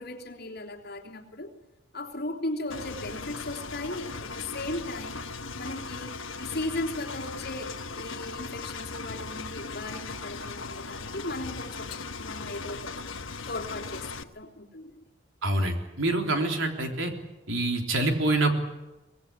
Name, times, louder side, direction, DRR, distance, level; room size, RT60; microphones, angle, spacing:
voice 1, 0.0-1.5 1.9-5.2 5.6-11.9 12.2-13.2 13.5-15.0, left 2 dB, 55° left, 0 dB, 3.3 m, -37 dB
Engine, 2.7-14.2, left 4 dB, 90° left, 1.3 m, -38 dB
voice 2, 15.4-17.1 17.5-18.5, right 2 dB, 85° right, 3 dB, 3.7 m, -26 dB
24.0 x 19.5 x 9.8 m, 1.1 s
head